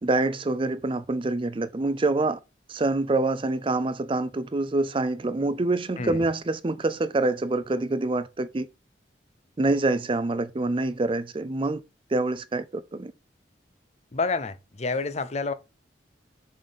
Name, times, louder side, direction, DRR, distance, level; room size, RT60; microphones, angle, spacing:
voice 1, 0.0-2.4 2.7-8.7 9.6-11.8 12.1-13.1, right 2 dB, 30° right, 0.4 m, -26 dB
voice 2, 14.1-15.5, left 4 dB, 35° left, 0.6 m, -29 dB
7.2 x 4.2 x 5.2 m
head